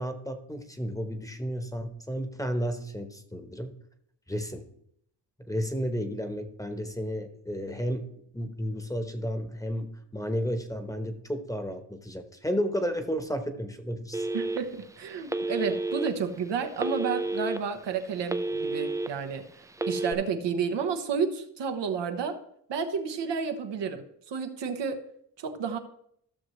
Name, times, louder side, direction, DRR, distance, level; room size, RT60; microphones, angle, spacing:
voice 1, 0.0-3.7 4.3-4.7 5.5-8.1 8.3-14.3, equal, 10° left, 7 dB, 1.0 m, -32 dB
Telephone, 14.1-14.8 15.3-16.1 16.8-17.6 18.0-19.1 19.7-20.1, right 2 dB, 10° right, 0.3 m, -30 dB
voice 2, 14.3-19.4 19.9-22.4 22.7-25.0 25.4-25.8, right 6 dB, 85° right, 6 dB, 1.0 m, -31 dB
14.5 x 6.3 x 3.1 m, 0.71 s
cardioid pair, 80°, 42 cm